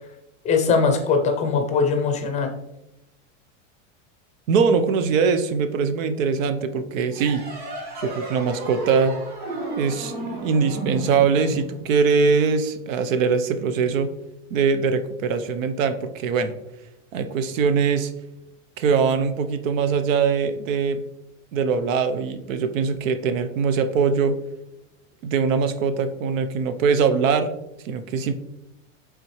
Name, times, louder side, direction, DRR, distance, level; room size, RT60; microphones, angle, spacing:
voice 1, 0.4-2.5, left 5 dB, 20° left, 4 dB, 0.5 m, -21 dB
voice 2, 4.5-7.4 8.0-9.1 9.8-14.1 14.5-16.5 17.1-18.1 18.8-21.0 21.5-24.4 25.2-27.6 27.8-28.3, right 5 dB, 90° right, 10 dB, 0.8 m, -22 dB
sound 1, 7.1-12.4, right 1 dB, 25° right, 2.3 m, -33 dB
8.2 x 3.7 x 3.1 m, 0.87 s
supercardioid pair, 160°, 38 cm